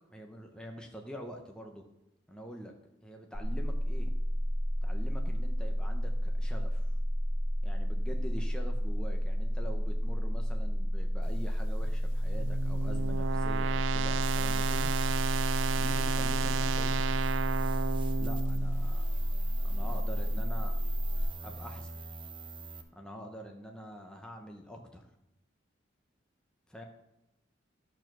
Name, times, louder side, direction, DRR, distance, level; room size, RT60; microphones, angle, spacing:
voice 1, 0.1-1.9 2.3-2.7 3.0-4.1 4.8-6.9 7.6-14.9 15.7-17.1 18.2-19.1 19.6-20.7 21.4-22.0 22.9-25.1 26.7-26.8, equal, 5° left, 1 dB, 0.8 m, -45 dB
sound 1, 3.3-21.2, equal, 30° left, 1.3 m, -31 dB
sound 2, 11.8-18.9, right 6 dB, 80° right, 0.4 m, -33 dB
sound 3, 14.2-22.8, right 5 dB, 25° right, 0.8 m, -46 dB
13.0 x 4.6 x 6.1 m, 0.88 s
head